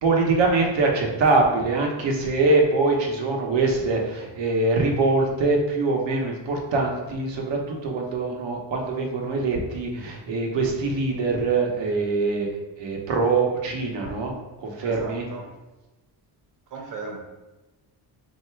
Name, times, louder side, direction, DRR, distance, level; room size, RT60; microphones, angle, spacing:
voice 1, 0.0-12.5 12.8-14.3 14.6-15.2, right 3 dB, 80° right, 1 dB, 0.9 m, -23 dB
voice 2, 14.8-15.5 16.7-17.2, right 4 dB, 45° right, 1 dB, 0.9 m, -36 dB
3.3 x 2.7 x 4.4 m, 1.1 s
cardioid pair, 145°, 43 cm